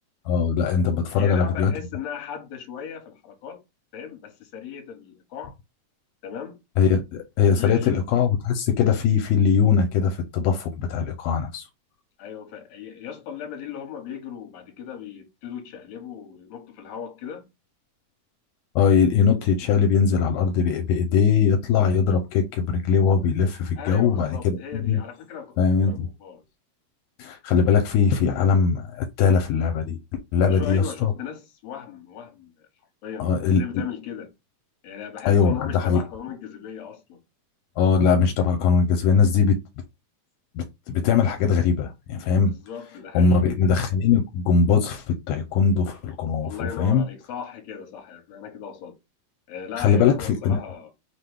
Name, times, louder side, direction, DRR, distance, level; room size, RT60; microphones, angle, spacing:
voice 1, 0.3-1.7 6.8-7.0 7.4-11.7 18.8-25.0 25.6-26.1 27.2-30.0 30.3-31.1 33.2-33.6 35.3-36.0 37.8-39.6 40.6-42.5 43.1-47.0 49.8-50.6, left 6 dB, 85° left, 2.1 m, -21 dB
voice 2, 1.2-3.6 3.9-5.5 6.2-6.6 7.5-8.0 12.2-17.5 23.8-26.4 30.4-32.7 33.0-34.3 34.8-37.2 42.5-43.4 46.4-49.0 49.5-50.9, left 8 dB, 60° left, 2.0 m, -37 dB
5.7 x 2.2 x 3.4 m
omnidirectional pair, 3.7 m